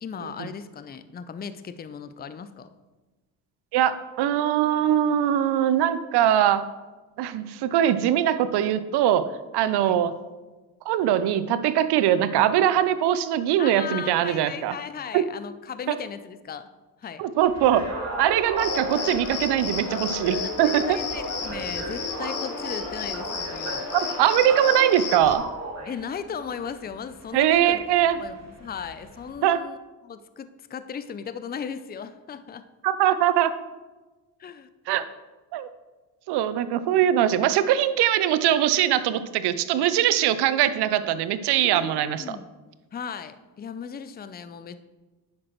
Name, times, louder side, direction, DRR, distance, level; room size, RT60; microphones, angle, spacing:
voice 1, 0.0-2.7 9.8-10.0 13.6-16.7 17.0-17.2 20.6-23.9 25.8-27.8 28.2-29.8 30.0-32.7 34.4-34.7 41.6-42.4 42.9-44.8, left 7 dB, 25° left, 11 dB, 0.5 m, -37 dB
voice 2, 3.7-6.6 7.2-9.3 9.5-10.1 10.9-14.7 15.1-15.2 15.9-16.0 17.2-17.8 18.2-21.0 23.9-25.4 27.3-28.2 29.4-29.6 32.8-33.5 34.9-35.0 35.5-35.7 36.3-42.4, right 11 dB, 70° right, 14 dB, 0.6 m, -22 dB
sound 1, 17.4-29.3, right 1 dB, 40° right, 2.1 m, -38 dB
Cricket, 18.6-25.4, left 4 dB, 45° left, 1.4 m, -32 dB
9.5 x 5.9 x 3.1 m, 1.2 s
supercardioid pair, 60°, 42 cm